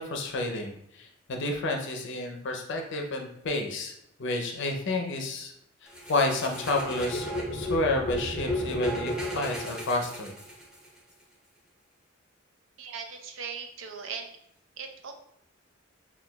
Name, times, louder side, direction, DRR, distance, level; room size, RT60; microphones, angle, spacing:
voice 1, 0.0-3.9 4.2-5.5 5.8-10.3, left 2 dB, 65° left, 3 dB, 0.5 m, -30 dB
sound 1, 5.9-10.9, left 1 dB, 5° right, 0.7 m, -33 dB
voice 2, 12.8-14.3 14.8-15.1, right 6 dB, 70° right, 4 dB, 0.5 m, -38 dB
5.7 x 2.3 x 2.2 m, 0.77 s
head